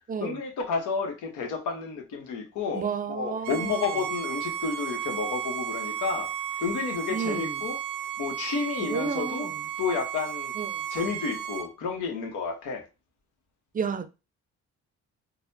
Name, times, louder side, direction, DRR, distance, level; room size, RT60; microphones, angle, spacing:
voice 1, 0.2-6.3 6.6-7.8 8.2-9.5 9.8-10.5 10.9-12.8, left 5 dB, 80° left, 1.0 m, -31 dB
voice 2, 2.7-4.0 7.1-7.6 8.8-9.5 10.6-10.8 13.7-14.1, right 6 dB, 30° right, 0.4 m, -32 dB
Bowed string instrument, 3.4-11.7, right 9 dB, 90° right, 0.5 m, -34 dB
4.0 x 2.1 x 2.7 m
cardioid pair, 90°, 30 cm